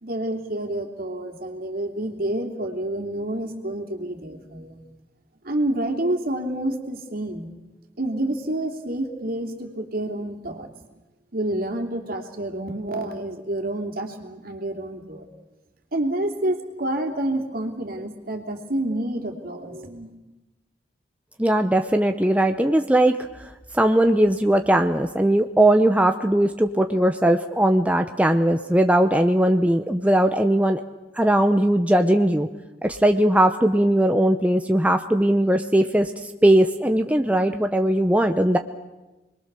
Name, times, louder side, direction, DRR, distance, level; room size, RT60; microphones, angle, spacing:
voice 1, 0.0-4.8 5.4-7.5 8.0-10.7 11.3-15.2 15.9-20.1, right 1 dB, 55° right, 3 dB, 3.0 m, -28 dB
voice 2, 21.4-30.8 31.2-32.5 32.8-36.1 36.4-38.6, right 1 dB, 10° right, 6 dB, 0.7 m, -19 dB
27.5 x 21.5 x 6.8 m, 1.1 s
head